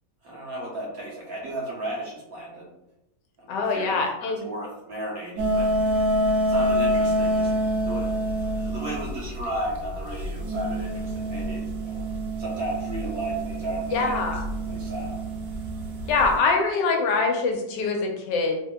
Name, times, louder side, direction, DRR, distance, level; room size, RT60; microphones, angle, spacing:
voice 1, 0.2-2.7 3.4-4.0 4.4-5.7 6.5-7.5 7.8-12.0 12.4-14.2 14.6-15.2, right 1 dB, 60° right, -4 dB, 1.4 m, -34 dB
voice 2, 3.5-4.5 13.9-14.4 16.1-18.6, left 4 dB, 85° left, 3 dB, 1.3 m, -24 dB
sound 1, 5.4-16.3, right 1 dB, 80° right, 1.4 m, -27 dB
3.6 x 3.3 x 2.2 m, 0.87 s
omnidirectional pair, 1.9 m